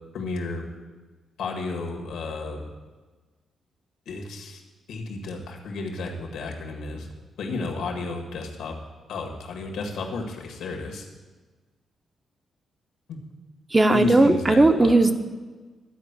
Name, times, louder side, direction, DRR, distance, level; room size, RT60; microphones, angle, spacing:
voice 1, 0.1-0.6 1.4-2.6 4.0-4.6 4.9-7.1 7.4-8.7 9.1-11.1 13.1-13.2 13.9-15.0, left 3 dB, 85° left, 1 dB, 1.8 m, -32 dB
voice 2, 13.7-15.1, right 2 dB, 20° right, 8 dB, 0.6 m, -17 dB
12.5 x 4.5 x 8.1 m, 1.3 s
cardioid pair, 105°, 0 cm